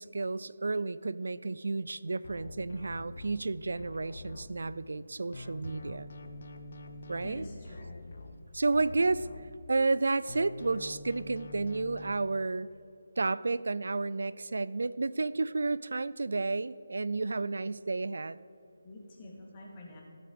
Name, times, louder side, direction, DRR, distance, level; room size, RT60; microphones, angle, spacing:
voice 1, 0.0-6.1 7.1-7.5 8.5-9.3 9.7-12.7 13.2-18.4, right 3 dB, 70° right, 18 dB, 0.4 m, -31 dB
sound 1, 2.2-5.0 5.3-10.0 10.3-12.1, left 2 dB, 60° left, 0.9 m, -46 dB
voice 2, 7.2-7.8 17.2-17.4 18.8-20.0, left 1 dB, 30° left, -2 dB, 2.4 m, -47 dB
14.5 x 8.0 x 4.8 m, 2.8 s
figure-of-eight pair, 165°, 0 cm